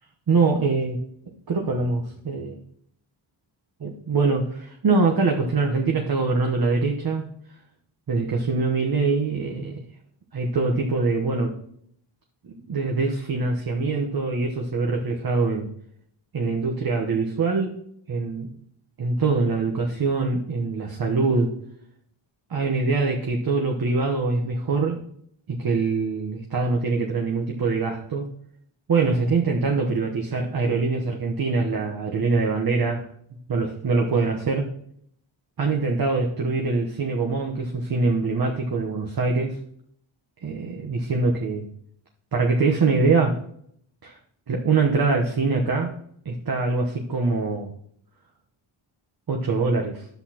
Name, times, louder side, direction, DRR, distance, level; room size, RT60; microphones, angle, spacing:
voice 1, 0.3-1.0 1.5-2.6 3.8-7.2 8.1-9.8 10.3-11.5 12.4-15.7 16.3-17.8 18.1-18.5 19.0-21.5 22.5-25.0 25.5-28.3 28.9-33.1 33.5-34.7 35.6-39.6 40.4-41.7 42.3-43.4 44.0-44.2 44.5-45.9 46.2-47.7 49.3-50.1, right 3 dB, 45° right, 1 dB, 1.1 m, -23 dB
10.5 x 8.1 x 2.9 m, 0.69 s
cardioid pair, 95°, 49 cm